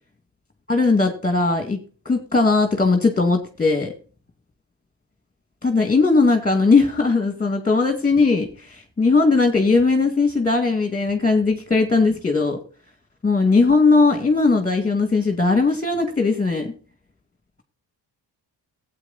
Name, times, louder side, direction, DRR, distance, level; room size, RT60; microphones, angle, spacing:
voice 1, 0.7-1.8 2.1-3.9 5.6-12.6 13.2-16.7, left 3 dB, 20° left, 6 dB, 2.2 m, -19 dB
17.0 x 8.9 x 4.1 m, 0.38 s
wide cardioid pair, 120°, 44 cm